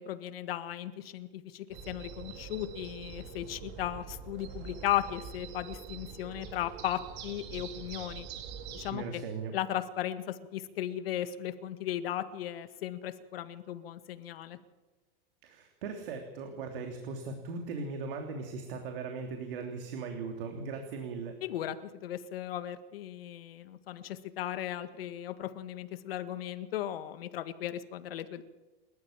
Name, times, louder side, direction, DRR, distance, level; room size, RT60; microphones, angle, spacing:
voice 1, 0.0-8.3 8.7-9.2 9.5-14.6 21.4-21.8 22.0-28.4, left 12 dB, 75° left, 10 dB, 1.9 m, -36 dB
sound 1, 1.7-8.9, right 7 dB, 35° right, 2.2 m, -44 dB
voice 2, 8.9-9.5 15.4-21.4, right 4 dB, 65° right, 4 dB, 3.2 m, -38 dB
29.5 x 13.5 x 7.4 m, 1.2 s
supercardioid pair, 160°, 29 cm